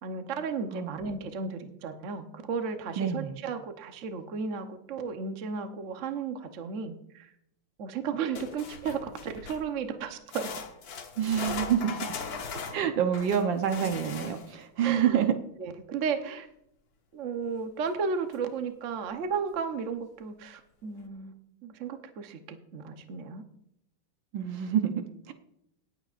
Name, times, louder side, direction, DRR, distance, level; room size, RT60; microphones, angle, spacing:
voice 1, 0.0-7.3 7.8-10.6 14.8-15.3 15.6-16.5 17.1-21.3 21.6-23.4 24.4-24.5, right 5 dB, 50° right, 6 dB, 1.0 m, -34 dB
voice 2, 0.7-1.0 3.0-3.4 11.2-12.2 12.7-15.3 24.3-25.3, right 9 dB, 70° right, 7 dB, 1.5 m, -27 dB
sound 1, 8.3-9.7 10.3-14.6 17.9-18.0 18.3-18.4 19.1-19.2, left 5 dB, 55° left, 1.4 m, -39 dB
18.0 x 9.0 x 2.5 m, 0.76 s
omnidirectional pair, 2.2 m